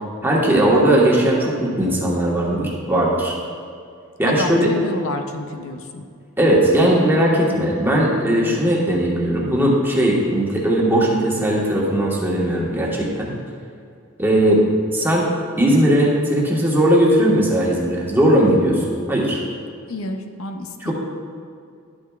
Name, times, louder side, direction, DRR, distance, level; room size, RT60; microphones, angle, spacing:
voice 1, 0.2-3.3 4.2-4.7 6.4-13.3 14.2-14.6 14.9-15.3 15.6-19.4 20.8-20.9, right 1 dB, 10° right, -4 dB, 1.3 m, -18 dB
voice 2, 4.2-6.1 19.9-20.9, left 2 dB, 70° left, 6 dB, 0.6 m, -29 dB
11.5 x 8.7 x 2.4 m, 2.3 s
head